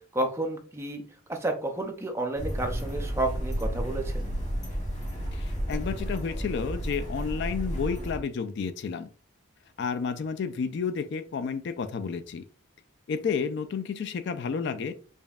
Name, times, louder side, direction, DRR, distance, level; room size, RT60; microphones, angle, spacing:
voice 1, 0.1-1.0 1.3-4.3, right 2 dB, 15° right, 4 dB, 0.5 m, -31 dB
sound 1, 2.4-8.2, equal, 35° left, 1.1 m, -32 dB
voice 2, 5.3-9.1 9.8-12.4 13.1-14.9, left 5 dB, 55° left, 11 dB, 0.3 m, -31 dB
5.1 x 2.6 x 2.3 m, 0.41 s
head